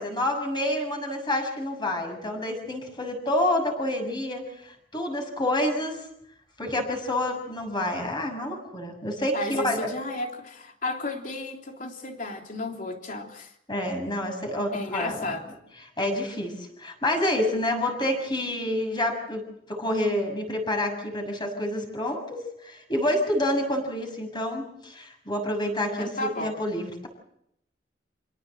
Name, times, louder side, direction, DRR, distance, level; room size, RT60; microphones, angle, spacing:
voice 1, 0.0-6.0 6.6-9.9 13.7-15.4 16.0-19.4 19.7-27.1, left 1 dB, 25° left, 6.7 m, -28 dB
voice 2, 9.3-13.5 14.7-15.4 26.0-26.6, left 2 dB, 50° left, 3.3 m, -33 dB
28.0 x 17.5 x 7.8 m
head